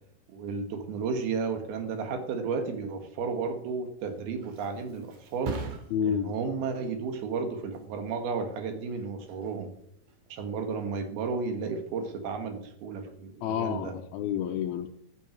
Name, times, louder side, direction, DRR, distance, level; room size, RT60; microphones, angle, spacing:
voice 1, 0.3-5.6 6.1-9.7 10.3-14.0, right 5 dB, 80° right, 6 dB, 3.6 m, -33 dB
Thump thud, 3.9-11.3 11.7-12.2, right 4 dB, 55° right, 3.2 m, -44 dB
voice 2, 5.9-6.3 13.4-14.9, left 9 dB, 85° left, 1 dB, 2.8 m, -29 dB
14.5 x 12.0 x 4.5 m, 0.69 s
omnidirectional pair, 4.3 m